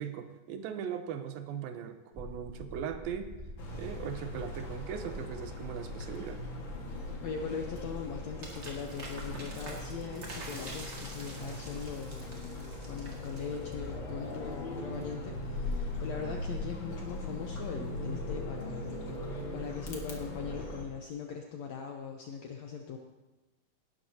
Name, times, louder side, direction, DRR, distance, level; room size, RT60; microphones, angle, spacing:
voice 1, 0.0-3.3 3.7-6.4, right 8 dB, 90° right, 8 dB, 2.7 m, -39 dB
sound 1, 2.1-19.0, equal, 20° right, 0.8 m, -50 dB
sound 2, 3.6-20.8, left 2 dB, 45° left, 2.0 m, -40 dB
voice 2, 7.2-19.3 19.5-23.0, left 6 dB, 75° left, 2 dB, 1.6 m, -40 dB
sound 3, 8.4-13.9, right 2 dB, 35° right, 2.0 m, -47 dB
18.0 x 12.0 x 2.8 m, 1.1 s
omnidirectional pair, 4.0 m